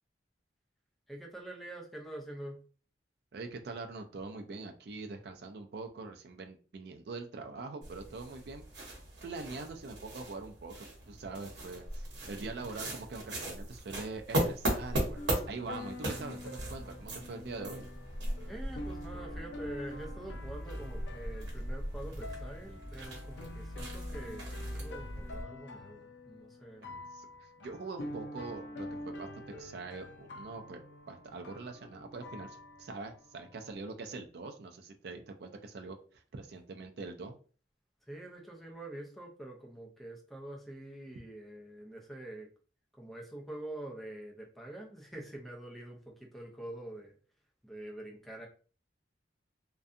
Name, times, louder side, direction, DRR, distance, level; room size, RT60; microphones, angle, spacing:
voice 1, 1.1-2.6 12.4-12.7 18.5-26.9 38.0-42.5 42.9-47.2 47.6-48.5, right 1 dB, ahead, -1 dB, 0.5 m, -46 dB
voice 2, 3.3-8.6 9.2-17.9 26.8-27.3 27.6-29.3 29.6-37.3, right 3 dB, 60° right, 5 dB, 0.4 m, -43 dB
sound 1, 7.8-25.4, right 1 dB, 85° right, 0.8 m, -38 dB
sound 2, 15.2-33.7, left 1 dB, 85° left, 0.4 m, -47 dB
2.6 x 2.2 x 2.5 m, 0.40 s
head